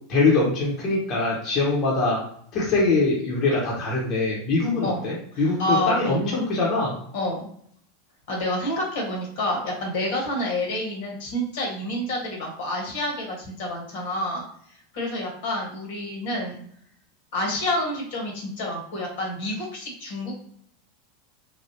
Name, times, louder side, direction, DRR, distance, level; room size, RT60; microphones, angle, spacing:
voice 1, 0.1-2.2 2.5-7.0, left 3 dB, 45° left, -4 dB, 1.0 m, -23 dB
voice 2, 5.3-6.4 7.1-7.5 8.3-14.4 14.9-16.6 17.3-20.3, left 1 dB, 65° left, -1 dB, 1.4 m, -28 dB
3.4 x 2.3 x 2.8 m, 0.64 s
hypercardioid pair, 95°, 0 cm